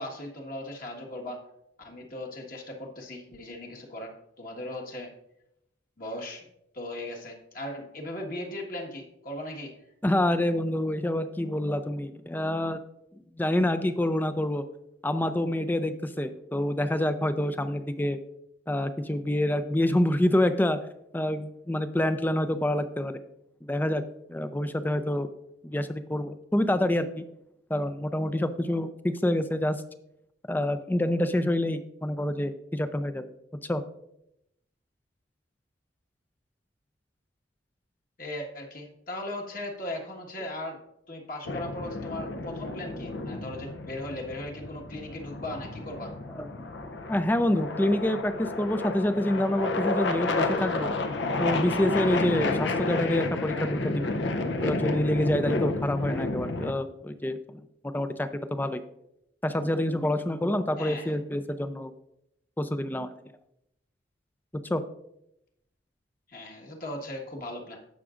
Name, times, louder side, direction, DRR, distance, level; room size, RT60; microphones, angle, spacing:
voice 1, 0.0-1.4 1.8-5.1 6.0-6.4 6.7-9.7 38.2-40.8 41.1-46.1 60.8-61.2 66.3-67.8, left 1 dB, 50° left, 0 dB, 1.5 m, -38 dB
voice 2, 10.0-12.8 13.4-14.6 15.0-18.2 18.7-20.8 21.1-23.1 23.7-24.0 24.3-25.3 25.6-27.2 27.7-29.8 30.5-33.3 33.7-33.8 46.3-46.5 47.1-50.9 51.4-54.1 54.6-57.6 57.9-58.8 59.4-61.9 62.6-63.1 64.7-64.8, left 1 dB, 10° left, 10 dB, 0.5 m, -27 dB
sound 1, 41.4-56.7, left 2 dB, 70° left, 0.7 m, -31 dB
17.5 x 6.0 x 2.5 m, 0.81 s
head